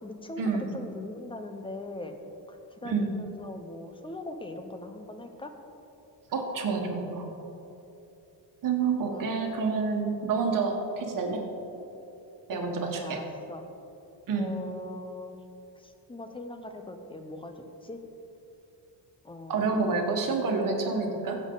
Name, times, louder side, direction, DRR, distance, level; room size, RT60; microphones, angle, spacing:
voice 1, 0.0-2.1 2.5-5.5 9.0-9.2 12.5-12.6 12.9-13.7 14.4-15.3 15.8-18.0 19.2-20.0, left 2 dB, 10° left, 6 dB, 0.6 m, -41 dB
voice 2, 6.3-7.2 8.6-11.4 12.5-13.2 14.3-14.5 19.5-21.4, right 4 dB, 50° right, 2 dB, 1.5 m, -28 dB
15.5 x 7.4 x 3.9 m, 2.9 s
cardioid pair, 155°, 43 cm